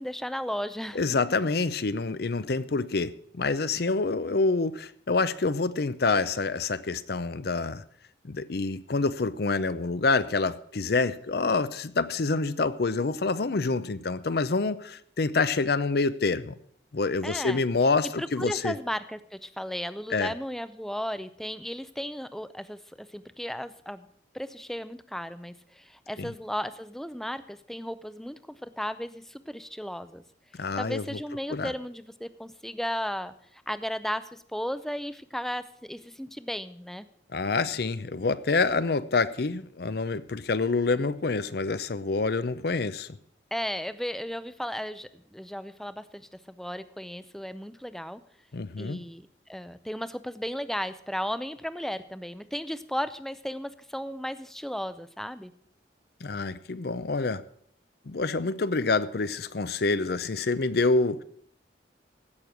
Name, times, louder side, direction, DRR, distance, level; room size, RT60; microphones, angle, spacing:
voice 1, 0.0-1.0 17.2-17.6 18.2-24.1 24.3-30.2 30.8-37.1 43.5-48.2 48.8-55.5, equal, ahead, 13 dB, 0.4 m, -35 dB
voice 2, 0.9-7.8 8.2-16.6 16.9-18.8 20.1-20.3 26.2-26.3 30.5-31.2 31.5-31.7 37.3-43.2 48.5-49.0 56.2-57.4 58.1-61.2, left 3 dB, 60° left, 15 dB, 0.6 m, -27 dB
16.0 x 6.5 x 6.0 m, 0.64 s
head